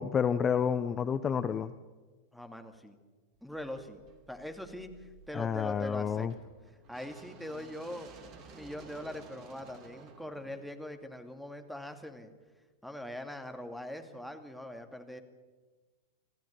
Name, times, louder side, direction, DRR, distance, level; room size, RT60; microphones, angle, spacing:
voice 1, 0.0-1.7 5.3-6.3, left 7 dB, 25° left, 12 dB, 0.8 m, -29 dB
voice 2, 2.3-3.0 3.4-4.0 4.3-6.3 6.9-12.3 12.8-15.2, left 1 dB, ahead, 7 dB, 2.3 m, -42 dB
sound 1, 3.5-11.6, right 4 dB, 35° right, 2.9 m, -55 dB
28.0 x 14.5 x 8.7 m, 1.3 s
figure-of-eight pair, 90°, 0 cm